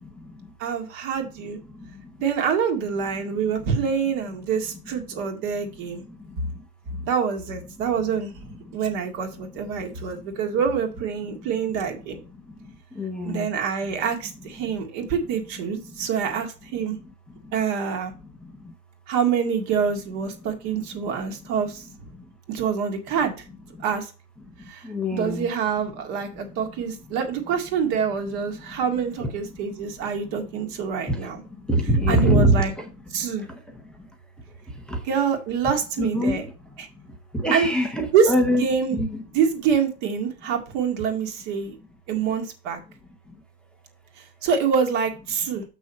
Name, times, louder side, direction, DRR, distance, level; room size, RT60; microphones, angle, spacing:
voice 1, 0.6-1.6 2.2-6.0 7.0-8.3 8.7-12.2 13.2-17.0 17.5-18.1 19.1-21.9 22.5-23.3 23.8-24.1 24.7-31.4 32.1-32.7 33.1-33.5 35.1-36.4 37.5-37.7 38.1-38.3 38.6-39.0 39.3-41.8 42.1-42.8 44.2-45.6, right 6 dB, 35° right, 4 dB, 2.0 m, -26 dB
voice 2, 13.0-13.5 24.8-25.5 29.2-29.3 31.1-31.2 31.7-32.6 34.9-35.0 36.0-36.4 37.3-39.2, equal, ahead, 3 dB, 0.7 m, -23 dB
7.2 x 6.1 x 4.2 m, 0.32 s
supercardioid pair, 150°, 48 cm